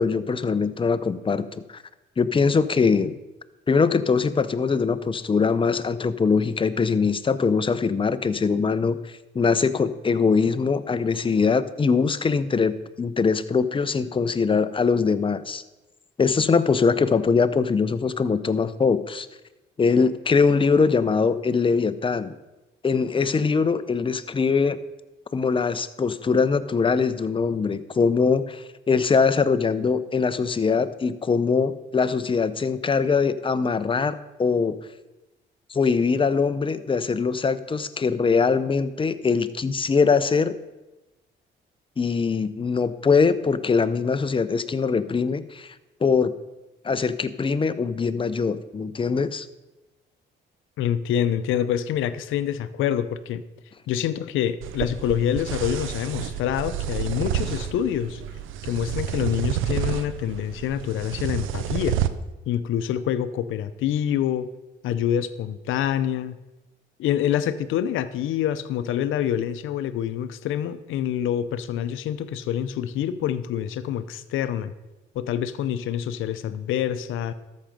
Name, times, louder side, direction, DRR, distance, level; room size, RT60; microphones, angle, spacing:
voice 1, 0.0-1.8 2.2-3.2 3.7-9.0 9.3-15.6 16.2-19.3 19.8-22.4 22.8-24.8 25.3-34.7 35.7-40.6 42.0-45.7 46.0-46.3 46.8-49.5, left 5 dB, 25° left, 12 dB, 0.7 m, -22 dB
voice 2, 50.8-53.4 53.9-58.2 58.6-62.0 62.5-64.5 64.8-66.4 67.0-74.7 75.1-77.3, left 10 dB, 85° left, 13 dB, 0.7 m, -26 dB
sound 1, 54.6-62.1, right 10 dB, 85° right, 0.6 m, -29 dB
13.5 x 6.4 x 5.1 m, 1.0 s
cardioid pair, 90°, 20 cm